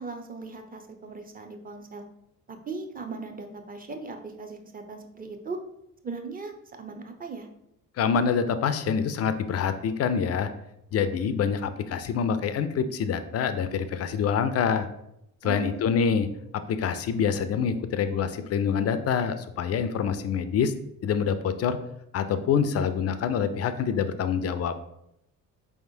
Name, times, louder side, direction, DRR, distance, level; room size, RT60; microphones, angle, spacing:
voice 1, 0.0-2.0 2.5-5.6 6.0-6.5 6.8-7.5 15.4-15.8, right 4 dB, 20° right, 5 dB, 0.6 m, -38 dB
voice 2, 8.0-10.5 10.9-14.9 15.4-16.3 16.7-20.7 21.0-21.8 22.1-24.7, left 7 dB, 35° left, 11 dB, 0.4 m, -26 dB
4.5 x 3.5 x 2.7 m, 0.79 s
hypercardioid pair, 50°, 43 cm